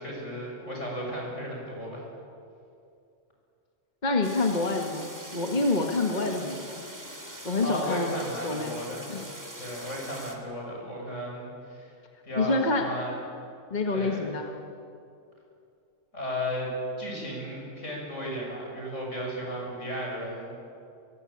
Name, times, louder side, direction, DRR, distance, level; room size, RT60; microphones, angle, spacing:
voice 1, 0.0-2.0 7.6-9.1 9.6-11.9 12.2-13.1 13.9-14.3 16.1-16.7 17.0-20.5, equal, 80° left, -1 dB, 7.8 m, -34 dB
voice 2, 4.0-6.8 7.4-8.1 8.4-8.8 9.1-9.2 12.4-12.9 13.7-14.5, left 3 dB, 35° left, 2 dB, 1.7 m, -27 dB
sound 1, 4.2-10.4, right 1 dB, 15° right, 2.4 m, -43 dB
25.0 x 23.0 x 8.7 m, 2.5 s
omnidirectional pair, 1.3 m